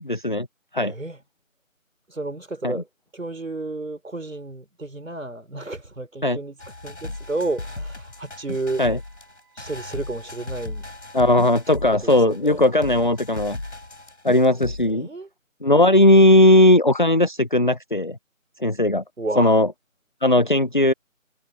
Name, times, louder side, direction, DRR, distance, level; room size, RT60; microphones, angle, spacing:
voice 1, 0.0-0.5 0.7-0.9 2.6-2.8 6.2-6.4 8.8-9.0 11.1-13.6 14.2-15.1 15.6-18.2 18.6-19.0 19.4-19.7 20.2-20.9, left 1 dB, 35° left, 0.8 m, -17 dB
voice 2, 0.8-1.2 2.1-2.9 3.1-6.6 6.8-8.8 9.6-10.9 12.0-12.6 14.8-15.3 19.2-19.6, right 2 dB, 70° right, 3.9 m, -31 dB
sound 1, 6.6-14.9, left 2 dB, 55° left, 6.1 m, -36 dB
Wind instrument woodwind instrument, 7.1-13.4, right 8 dB, ahead, 3.7 m, -63 dB
figure-of-eight pair, 165°, 41 cm